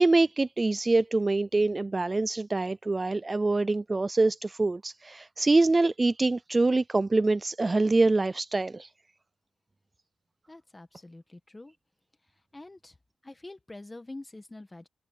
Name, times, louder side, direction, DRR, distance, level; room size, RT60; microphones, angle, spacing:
voice 1, 0.0-8.9, right 3 dB, 20° right, 0.3 m, -25 dB
voice 2, 10.5-11.7 12.5-13.0 13.2-14.9, left 2 dB, 15° left, 1.7 m, -45 dB
wide cardioid pair, 155°, 0 cm